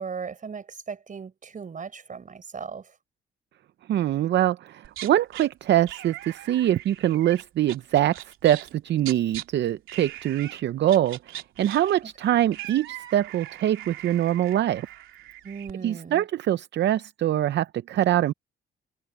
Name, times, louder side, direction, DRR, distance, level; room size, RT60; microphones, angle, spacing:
voice 1, 0.0-2.9 12.0-12.1 15.4-16.2, right 6 dB, 40° right, 4.9 m, -37 dB
voice 2, 3.9-14.9 15.8-18.3, right 12 dB, 60° right, 0.6 m, -24 dB
sound 1, 4.8-5.5 5.9-9.4 9.9-10.6 10.9-15.7, right 13 dB, 85° right, 3.0 m, -41 dB
cardioid pair, 90°, 20 cm